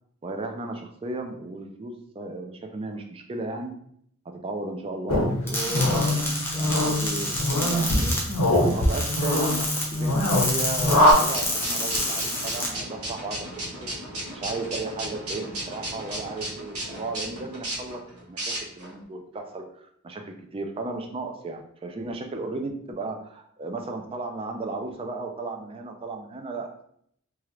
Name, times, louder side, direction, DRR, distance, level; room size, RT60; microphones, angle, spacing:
voice 1, 0.2-3.7 4.3-8.2 8.7-13.6 14.3-18.0 18.3-26.8, right 2 dB, 25° right, 4 dB, 0.4 m, -35 dB
sound 1, 5.1-11.1, left 1 dB, 90° left, 0.9 m, -23 dB
sound 2, 5.5-12.7, left 1 dB, 10° left, 0.6 m, -29 dB
sound 3, 11.0-18.9, right 1 dB, 85° right, 1.1 m, -35 dB
3.1 x 2.4 x 3.0 m, 0.68 s
head